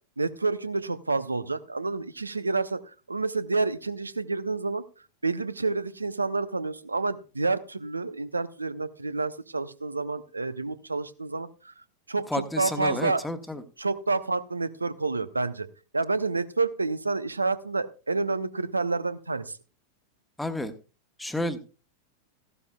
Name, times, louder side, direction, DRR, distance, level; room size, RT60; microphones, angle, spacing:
voice 1, 0.2-2.8 3.1-4.8 5.2-11.7 12.1-13.2 13.8-15.7 15.9-19.6, right 3 dB, 80° right, 14 dB, 0.7 m, -29 dB
voice 2, 12.3-13.6 20.4-20.7 21.2-21.6, left 1 dB, 5° left, 9 dB, 1.1 m, -31 dB
15.5 x 12.0 x 2.3 m, 0.33 s
figure-of-eight pair, 90°, 0 cm